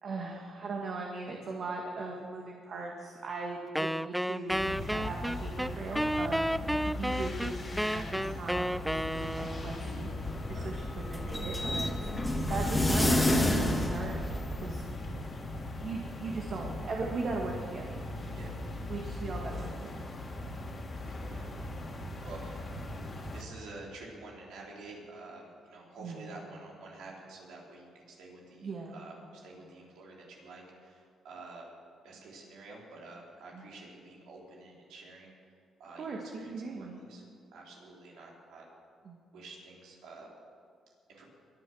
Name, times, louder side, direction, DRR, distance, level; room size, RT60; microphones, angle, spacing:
voice 1, 0.0-6.5 6.9-10.1 10.5-11.9 12.5-14.2 14.6-14.8 15.8-18.0 18.9-20.0 26.0-26.3 28.6-29.0 33.5-33.7 36.0-37.0 39.0-39.2, right 3 dB, 55° right, 0 dB, 1.8 m, -39 dB
Wind instrument woodwind instrument, 3.7-9.8, equal, ahead, 0.3 m, -32 dB
sound 1, 4.5-23.4, left 1 dB, 35° left, 2.4 m, -39 dB
sound 2, 10.1-14.9, left 1 dB, 15° left, 2.0 m, -29 dB
voice 2, 21.0-21.5 22.2-22.6 23.3-31.7 32.0-35.3 35.8-37.2 37.5-38.6 39.3-40.3 41.1-41.2, right 3 dB, 85° right, -3 dB, 4.0 m, -49 dB
22.5 x 7.7 x 6.4 m, 2.3 s
cardioid pair, 90°, 0 cm